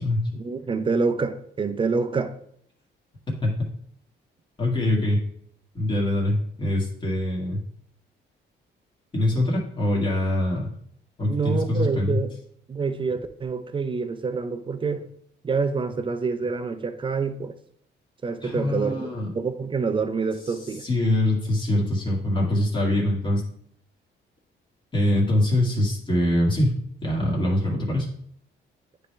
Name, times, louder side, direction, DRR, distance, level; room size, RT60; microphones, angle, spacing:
voice 1, 0.3-2.4 11.3-12.3 12.7-15.0 15.4-17.5 18.2-19.1 19.3-20.8, right 4 dB, 25° right, 0.6 m, -27 dB
voice 2, 4.6-5.2 5.7-7.6 9.1-10.7 11.2-12.2 18.4-19.3 20.8-23.4 24.9-26.8 27.0-28.1, left 1 dB, 25° left, 2.0 m, -23 dB
9.5 x 3.4 x 3.3 m
cardioid pair, 90°, 20 cm